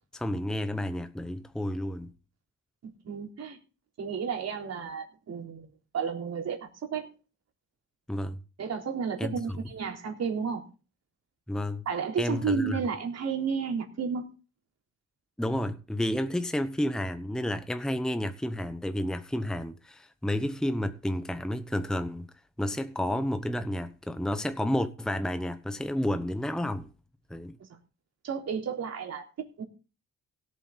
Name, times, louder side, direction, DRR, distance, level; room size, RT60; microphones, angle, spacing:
voice 1, 0.1-2.1 8.1-8.4 9.2-9.4 11.5-11.8 12.2-12.8 15.4-22.3 22.6-26.9 27.3-27.6, left 1 dB, ahead, 1.0 m, -31 dB
voice 2, 2.8-3.6 4.0-7.1 8.6-10.7 11.9-14.3 27.6-27.7 28.2-29.6, right 6 dB, 55° right, 3.8 m, -32 dB
17.0 x 8.2 x 4.0 m
cardioid pair, 90°, 30 cm